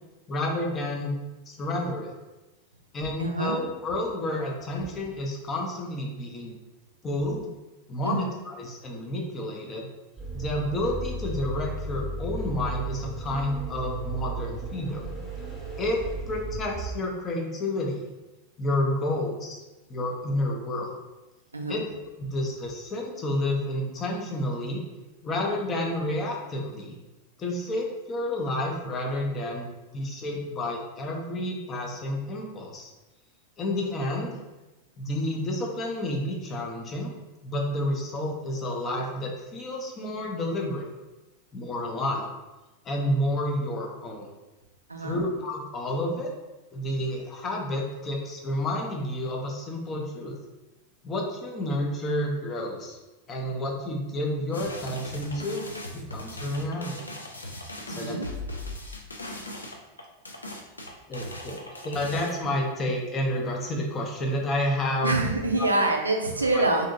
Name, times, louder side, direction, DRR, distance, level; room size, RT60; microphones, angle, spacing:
voice 1, 0.3-1.2 1.5-2.1 2.9-6.6 7.0-7.5 7.9-9.9 10.3-15.0 15.8-18.1 18.6-19.6 19.9-21.0 21.7-21.8 22.2-24.8 25.2-26.9 27.4-29.7 29.9-32.9 33.6-34.4 35.0-37.1 37.4-40.9 41.5-42.3 42.8-44.3 45.0-46.3 46.7-50.4 51.0-53.0 53.3-55.6 55.9-57.1 57.9-58.2 61.1-65.2 65.6-65.9 66.5-66.7, left 1 dB, 25° left, 0 dB, 0.5 m, -30 dB
voice 2, 3.2-3.6 8.0-8.3 21.5-21.9 44.9-45.2 57.9-58.3 65.0-66.9, right 2 dB, 80° right, 2 dB, 0.4 m, -26 dB
sound 1, 10.2-17.0, right 2 dB, 5° right, 0.9 m, -35 dB
sound 2, 54.5-62.3, left 1 dB, 80° left, 0.4 m, -38 dB
2.6 x 2.6 x 2.5 m, 1.1 s
figure-of-eight pair, 90°, 0 cm